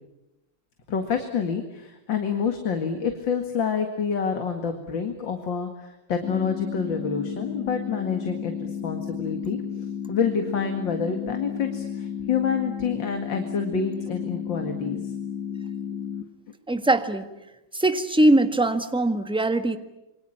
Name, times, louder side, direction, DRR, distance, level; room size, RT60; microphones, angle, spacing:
voice 1, 0.9-15.1, left 6 dB, 80° left, 6 dB, 2.7 m, -28 dB
sound 1, 6.2-16.2, left 8 dB, 55° left, 1.8 m, -33 dB
voice 2, 16.7-17.3 17.7-19.8, right 1 dB, 5° right, 9 dB, 1.3 m, -21 dB
28.0 x 23.5 x 8.7 m, 0.95 s
omnidirectional pair, 2.0 m